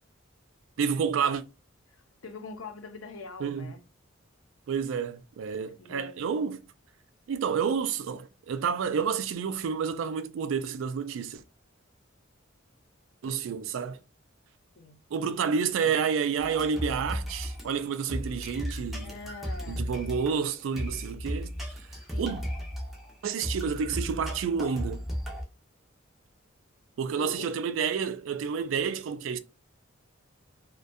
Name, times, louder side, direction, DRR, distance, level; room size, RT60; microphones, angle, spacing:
voice 1, 0.8-1.4 3.4-3.7 4.7-6.6 7.3-11.4 13.2-14.0 15.1-19.1 19.7-22.4 23.2-25.0 27.0-29.4, right 6 dB, 70° right, 0.3 m, -30 dB
voice 2, 1.9-3.8 5.7-6.3 14.8-15.0 19.0-19.9 22.0-22.5 27.1-27.5, left 4 dB, 85° left, 0.6 m, -44 dB
sound 1, 16.4-25.4, equal, ahead, 0.5 m, -35 dB
2.5 x 2.2 x 2.2 m
head